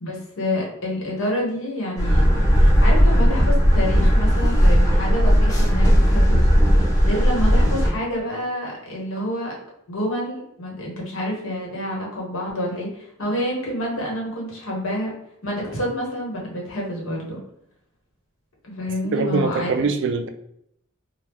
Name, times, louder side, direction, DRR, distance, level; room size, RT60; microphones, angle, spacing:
voice 1, 0.0-2.2 2.5-6.5 7.0-9.5 9.9-15.1 15.4-17.4 18.6-19.8, left 1 dB, 80° left, -2 dB, 1.1 m, -28 dB
sound 1, 2.0-7.9, equal, 20° left, 0.9 m, -16 dB
voice 2, 19.0-20.3, right 4 dB, 60° right, 7 dB, 0.3 m, -23 dB
3.0 x 2.2 x 3.5 m, 0.75 s
head